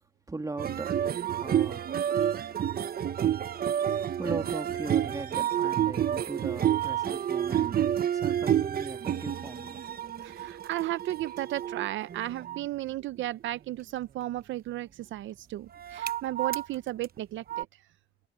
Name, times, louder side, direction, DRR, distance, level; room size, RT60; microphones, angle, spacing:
voice 1, 0.3-0.9 1.3-2.2 3.0-3.2 4.2-9.9, right 2 dB, 15° right, 2.7 m, -39 dB
sound 1, 0.6-12.6 15.7-16.7 17.0-17.2 17.5-17.6, right 10 dB, 50° right, 1.0 m, -29 dB
voice 2, 10.2-17.8, right 15 dB, 75° right, 0.5 m, -34 dB
cardioid pair, 90°, 20 cm